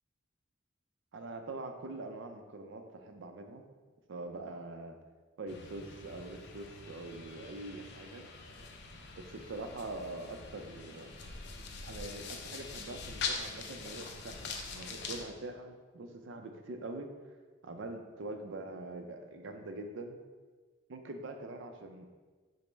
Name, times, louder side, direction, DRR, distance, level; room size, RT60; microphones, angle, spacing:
voice 1, 1.1-3.6 4.1-5.0 5.4-8.3 9.2-11.1 11.8-17.1 17.6-20.2 20.9-22.1, right 2 dB, 65° right, 6 dB, 0.4 m, -44 dB
sound 1, 5.5-15.2, left 4 dB, 55° left, 0.4 m, -43 dB
5.1 x 2.0 x 4.4 m, 1.4 s
head